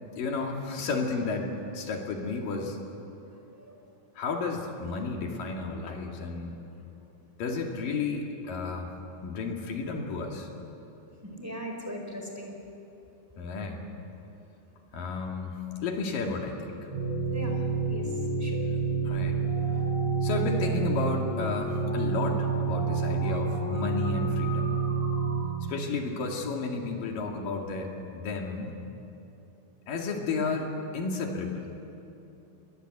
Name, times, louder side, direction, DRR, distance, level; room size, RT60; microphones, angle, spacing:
voice 1, 0.2-2.8 4.2-6.6 7.4-8.9 9.2-10.5 13.4-13.8 14.9-16.8 19.0-19.4 19.7-19.8 20.2-24.8 25.7-28.7 29.9-31.7, left 4 dB, 75° left, 1 dB, 4.0 m, -32 dB
voice 2, 11.2-12.5 17.3-17.6 17.9-18.1 18.4-18.6, equal, 5° right, 1 dB, 4.1 m, -39 dB
sound 1, 16.9-25.4, right 4 dB, 60° right, 8.4 m, -28 dB
29.0 x 22.0 x 8.0 m, 2.8 s
omnidirectional pair, 4.0 m